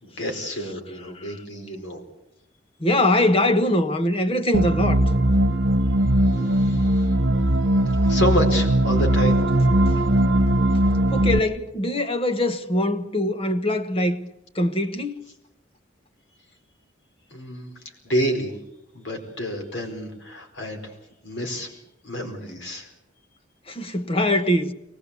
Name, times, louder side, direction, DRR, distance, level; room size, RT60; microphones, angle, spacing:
voice 1, 0.0-2.0 6.3-7.1 7.7-9.8 17.3-17.7 18.0-18.5 18.9-20.8 21.2-21.7 22.0-22.9, equal, 70° left, 4.5 m, -29 dB
voice 2, 2.8-5.0 6.3-6.8 11.1-14.2 14.5-15.3 23.7-24.7, left 1 dB, 30° left, 1.3 m, -23 dB
sound 1, 4.5-11.4, right 1 dB, 90° right, 1.2 m, -19 dB
23.5 x 19.5 x 8.3 m
head